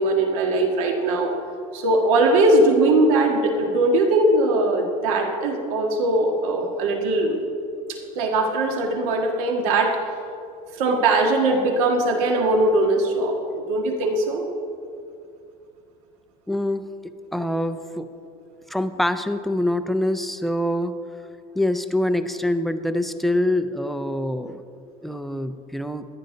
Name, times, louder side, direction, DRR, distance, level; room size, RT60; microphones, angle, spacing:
voice 1, 0.0-1.3 1.7-7.4 7.9-10.0 10.7-14.5, right 2 dB, 85° right, 2 dB, 1.7 m, -20 dB
voice 2, 16.5-18.1 18.7-21.0 21.6-24.6 25.0-26.1, left 1 dB, ahead, 9 dB, 0.3 m, -25 dB
14.0 x 11.5 x 3.9 m, 2.5 s
cardioid pair, 165°, 18 cm